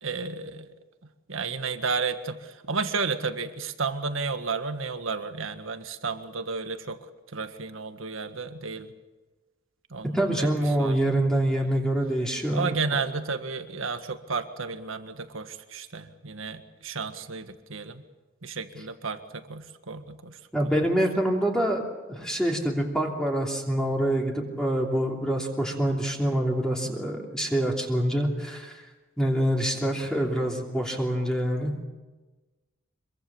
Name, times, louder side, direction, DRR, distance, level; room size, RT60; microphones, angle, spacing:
voice 1, 0.0-0.7 1.3-7.0 7.3-8.9 9.9-10.1 10.4-10.5 10.8-11.2 12.5-18.0 18.4-20.7 26.8-26.9, right 4 dB, 80° right, 8 dB, 1.7 m, -32 dB
voice 2, 10.1-12.8 20.5-21.8 22.1-28.8 29.2-31.7, right 1 dB, 5° left, -1 dB, 3.0 m, -26 dB
25.5 x 23.0 x 7.2 m, 1.2 s
head